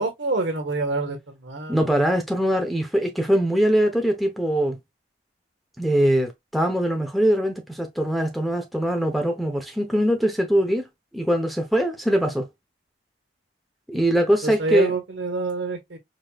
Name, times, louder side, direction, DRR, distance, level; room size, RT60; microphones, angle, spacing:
voice 1, 0.0-1.9 14.4-16.0, right 3 dB, 90° right, 1.4 m, -27 dB
voice 2, 1.7-4.8 5.8-10.8 11.1-12.5 13.9-14.9, equal, ahead, 0.8 m, -22 dB
4.9 x 3.0 x 2.3 m
head